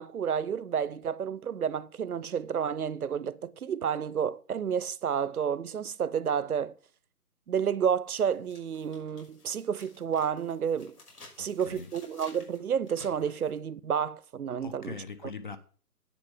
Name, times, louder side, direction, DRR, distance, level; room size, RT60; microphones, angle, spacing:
voice 1, 0.0-6.7 7.5-10.9 11.4-15.0, right 7 dB, 65° right, 0.8 m, -30 dB
sound 1, 7.6-7.7 8.2-13.6, left 2 dB, 75° left, 6.2 m, -54 dB
voice 2, 11.4-12.0 14.6-15.6, left 5 dB, 30° left, 0.8 m, -42 dB
10.0 x 8.4 x 4.8 m
figure-of-eight pair, 150°, 47 cm